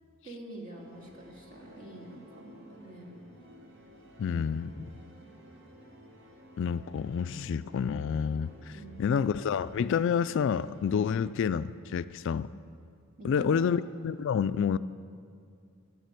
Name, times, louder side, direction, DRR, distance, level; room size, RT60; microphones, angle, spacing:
voice 1, 0.2-3.2 8.7-9.2 13.2-13.8, right 2 dB, 40° right, -1 dB, 2.5 m, -45 dB
sound 1, 0.7-11.3, equal, 55° right, 1.9 m, -53 dB
voice 2, 4.2-4.9 6.6-8.7 9.0-12.5 13.2-14.8, left 7 dB, 60° left, 15 dB, 0.3 m, -29 dB
12.0 x 10.5 x 8.2 m, 2.3 s
head